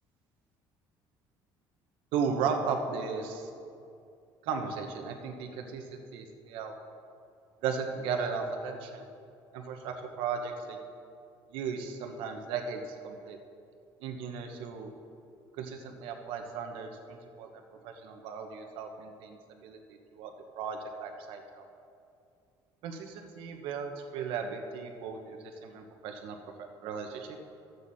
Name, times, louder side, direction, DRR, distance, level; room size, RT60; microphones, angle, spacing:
voice 1, 2.1-3.5 4.4-6.7 7.6-9.1 9.5-10.8 11.5-13.4 14.0-14.9 15.6-17.5 17.8-19.8 20.1-20.3 20.6-21.7 22.8-27.4, right 5 dB, 75° right, 4 dB, 1.1 m, -36 dB
13.0 x 8.2 x 4.1 m, 2.5 s
cardioid pair, 165°, 9 cm